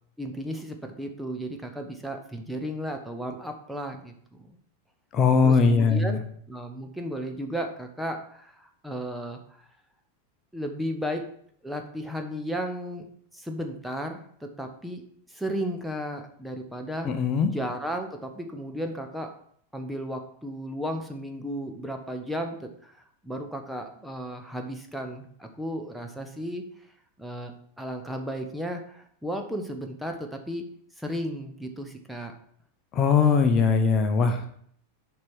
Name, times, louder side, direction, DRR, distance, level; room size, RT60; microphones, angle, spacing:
voice 1, 0.2-4.6 5.4-6.2 6.5-9.7 10.5-11.3 11.6-13.0 13.3-17.1 17.5-19.3 19.7-26.6 27.2-27.5 27.8-30.6 31.0-32.3, equal, ahead, 4 dB, 1.0 m, -34 dB
voice 2, 5.1-6.2 17.0-17.5 32.9-34.4, left 5 dB, 30° left, 6 dB, 0.9 m, -20 dB
7.4 x 4.8 x 6.2 m, 0.63 s
figure-of-eight pair, 90°, 0 cm